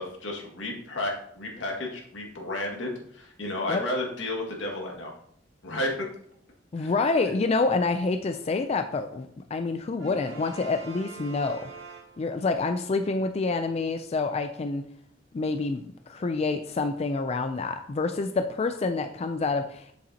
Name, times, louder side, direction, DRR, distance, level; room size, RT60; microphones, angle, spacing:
voice 1, 0.0-5.1 5.6-6.1 6.8-6.9, left 1 dB, 80° left, -1 dB, 2.0 m, -32 dB
voice 2, 6.7-11.7 12.2-14.8 15.3-19.9, left 3 dB, 35° left, 7 dB, 0.4 m, -27 dB
Brass instrument, 10.0-12.6, right 4 dB, 75° right, 2.3 m, -45 dB
7.6 x 7.1 x 2.8 m, 0.66 s
head